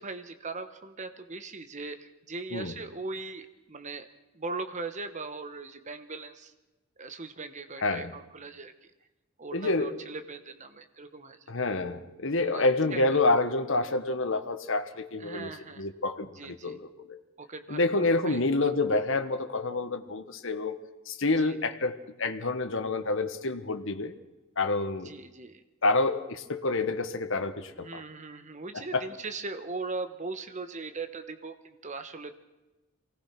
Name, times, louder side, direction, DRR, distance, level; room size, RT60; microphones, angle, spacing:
voice 1, 0.0-4.1 4.3-6.5 7.0-8.7 9.4-11.4 12.4-13.2 15.2-15.9 16.3-16.8 17.4-18.4 21.4-21.6 25.0-25.6 27.8-32.3, right 3 dB, 35° right, 9 dB, 1.1 m, -39 dB
voice 2, 7.8-8.1 9.5-10.0 11.5-15.5 15.8-17.2 17.7-20.8 21.1-24.1 24.6-25.1 25.8-28.0 28.7-29.0, left 2 dB, 60° left, 8 dB, 1.4 m, -28 dB
24.0 x 18.5 x 6.0 m, 1.1 s
head